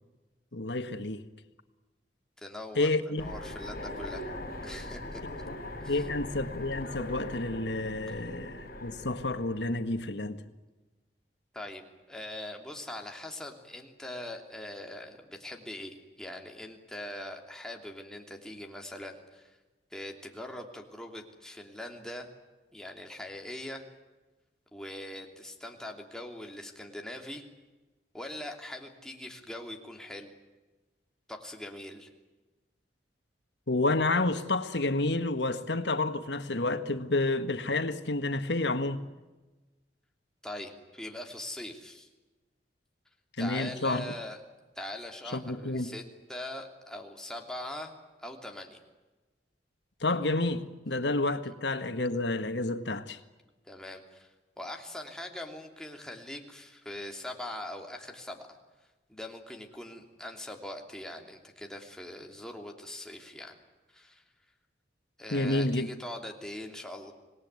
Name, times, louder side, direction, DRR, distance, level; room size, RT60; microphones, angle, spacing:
voice 1, 0.5-1.2 2.8-3.3 5.5-5.6 5.9-10.4 33.7-39.0 43.4-44.1 45.3-45.9 50.0-53.2 65.3-65.9, left 2 dB, 85° left, 1.8 m, -30 dB
voice 2, 2.4-2.9 3.2-4.3 4.6-5.5 5.8-6.1 8.1-8.2 11.5-19.5 19.9-22.3 22.7-23.8 24.7-27.4 28.1-30.3 31.3-32.1 40.4-42.1 43.4-44.4 44.7-46.0 46.3-48.8 53.6-54.3 54.6-58.5 59.1-63.5 63.9-64.2 65.2-67.1, left 1 dB, 5° left, 3.0 m, -42 dB
Train, 3.2-10.1, left 1 dB, 55° left, 8.0 m, -41 dB
26.0 x 19.0 x 9.6 m
head